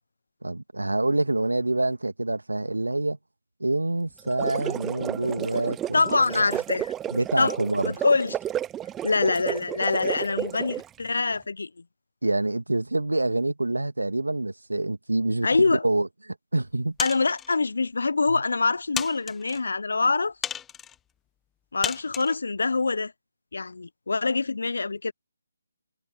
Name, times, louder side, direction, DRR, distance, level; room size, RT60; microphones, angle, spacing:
voice 1, 0.4-3.2 3.6-6.5 7.1-7.9 12.2-17.0 18.3-18.4, right 2 dB, 85° right, 2.1 m, -26 dB
sound 1, 4.2-11.0, right 11 dB, 10° right, 0.7 m, -32 dB
voice 2, 5.9-6.9 7.4-7.6 7.8-8.4 9.0-11.7 15.4-15.8 17.0-20.3 21.7-23.1 23.5-25.1, left 3 dB, 65° left, 0.9 m, -24 dB
sound 2, 17.0-17.5 18.2-18.3 18.9-19.6 20.4-20.9 21.8-22.3, left 9 dB, 10° left, 1.7 m, -33 dB
figure-of-eight pair, 150°, 0 cm